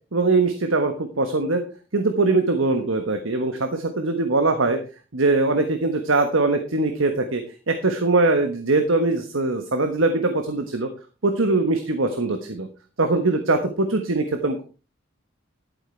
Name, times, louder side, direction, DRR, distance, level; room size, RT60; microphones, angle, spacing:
voice 1, 0.1-1.6 1.9-4.8 5.1-7.4 7.7-10.9 11.2-12.7 13.0-14.6, right 3 dB, 80° right, 7 dB, 1.3 m, -22 dB
12.0 x 8.1 x 4.6 m, 0.35 s
head